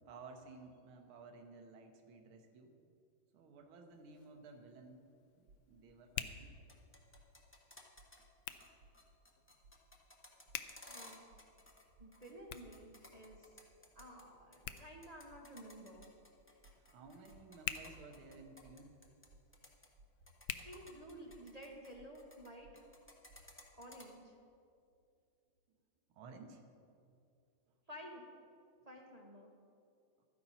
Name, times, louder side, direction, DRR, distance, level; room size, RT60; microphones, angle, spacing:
voice 1, 0.1-2.7 3.3-5.1 5.4-6.5 16.8-19.0 26.1-27.0 30.2-30.3, right 3 dB, 80° right, 3 dB, 1.8 m, -55 dB
Hands, 3.9-21.5, left 11 dB, 75° left, 1.1 m, -51 dB
sound 1, 5.5-5.8 6.3-6.6 7.1-7.5 8.0-8.3 8.8-9.1 9.6-10.0 10.5-10.8 11.3-11.6 12.0-12.3 12.6-12.9 13.3-13.6 14.0-14.3 14.6-14.9 15.3-15.6 16.0-16.3 16.6-16.9 17.3-17.6 18.0-18.3 18.6-18.9 19.3-19.6 20.0-20.3 20.6-20.9 21.3-21.6 22.0-22.3 22.6-22.9 23.3-23.5, right 2 dB, 60° right, 1.1 m, -64 dB
sound 2, 6.5-8.2 8.5-8.7 8.9-11.8 12.1-14.2 14.5-19.3 19.5-19.9 20.3-22.5 22.7-24.0, left 1 dB, 20° left, 0.3 m, -57 dB
voice 2, 10.8-11.2 12.0-13.5 13.9-16.1 20.6-22.7 23.8-24.3 27.9-28.2 28.8-29.5, equal, 35° right, -1 dB, 0.6 m, -52 dB
13.0 x 10.0 x 4.1 m, 2.4 s
omnidirectional pair, 2.3 m